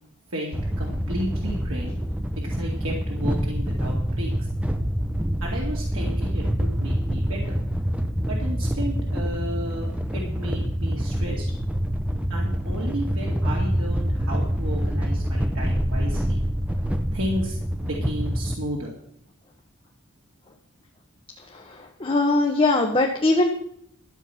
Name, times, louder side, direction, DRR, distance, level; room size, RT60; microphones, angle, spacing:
voice 1, 0.3-2.0 2.4-4.3 5.4-7.6 8.3-11.5 12.3-16.4 17.1-18.9, equal, 80° right, -3 dB, 2.2 m, -33 dB
sound 1, 0.5-18.6, equal, 5° right, 0.7 m, -26 dB
voice 2, 21.5-23.5, left 2 dB, 25° left, 2 dB, 1.0 m, -21 dB
13.0 x 7.9 x 5.7 m, 0.69 s
head